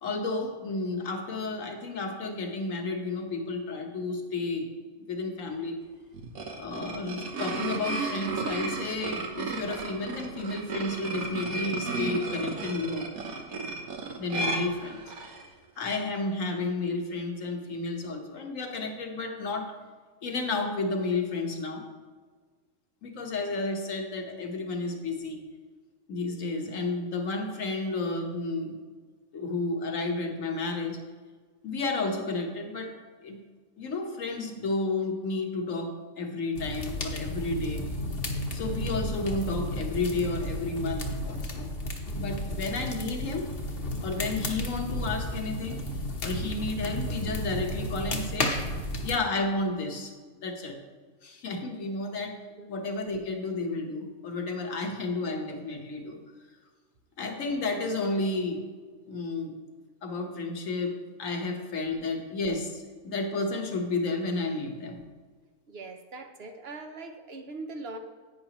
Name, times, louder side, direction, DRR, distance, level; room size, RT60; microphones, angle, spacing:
voice 1, 0.0-4.7 5.1-5.8 6.6-13.1 14.2-15.0 15.8-19.7 20.2-21.9 23.0-25.4 26.1-28.8 29.3-31.0 31.6-33.5 33.8-37.8 38.5-41.7 42.1-43.5 44.0-45.8 46.2-48.6 49.0-50.1 50.4-50.8 51.2-52.4 52.7-56.2 57.2-58.6 59.0-59.5 60.0-65.0, left 3 dB, 70° left, 3 dB, 1.6 m, -32 dB
sound 1, 6.1-15.5, right 3 dB, 85° right, 1.5 m, -34 dB
sound 2, 36.6-49.2, left 1 dB, 45° left, 1.2 m, -33 dB
voice 2, 65.7-68.0, right 3 dB, 55° right, 6 dB, 0.9 m, -41 dB
11.0 x 9.1 x 3.0 m, 1.5 s
omnidirectional pair, 1.4 m